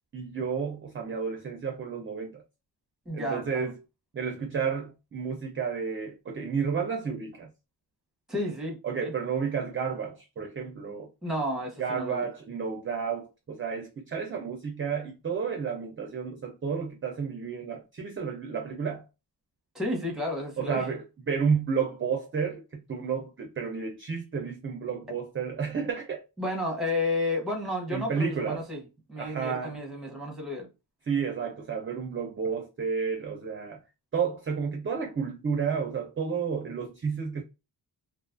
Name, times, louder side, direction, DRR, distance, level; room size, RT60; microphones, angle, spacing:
voice 1, 0.1-2.4 3.1-3.7 4.1-7.5 8.8-11.1 11.8-19.0 20.6-26.2 27.9-28.7 29.2-29.8 31.1-33.8 34.1-37.4, right 6 dB, 30° right, 0.4 m, -31 dB
voice 2, 3.1-3.7 8.3-9.1 11.2-12.3 19.7-20.9 26.4-28.8 29.1-30.7, left 1 dB, ahead, 0.7 m, -32 dB
2.4 x 2.3 x 2.4 m
wide cardioid pair, 135°, 44 cm